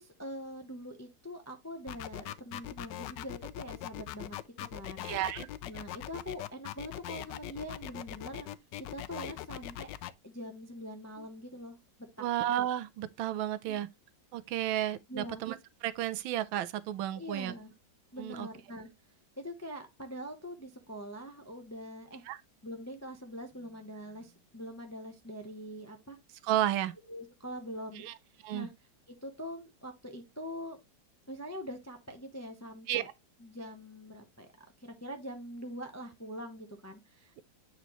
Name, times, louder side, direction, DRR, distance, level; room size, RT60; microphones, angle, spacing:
voice 1, 0.0-5.1 5.7-8.5 8.8-9.9 10.2-11.8 12.2-12.3 15.1-15.4 17.1-17.7 18.1-18.9 19.4-22.2 22.6-26.2 27.1-28.0 28.5-28.7 29.1-30.8 31.3-33.1 33.4-34.5 34.8-37.4, equal, 25° left, 0.3 m, -43 dB
sound 1, 1.9-10.1, left 14 dB, 75° left, 1.1 m, -41 dB
voice 2, 5.0-5.5 12.2-13.9 14.3-15.6 15.8-17.5 18.2-18.5 22.3-22.4 26.5-26.9 28.0-28.1 28.4-28.7 32.9-33.0, right 12 dB, 90° right, 1.4 m, -32 dB
8.8 x 4.1 x 3.0 m
omnidirectional pair, 2.1 m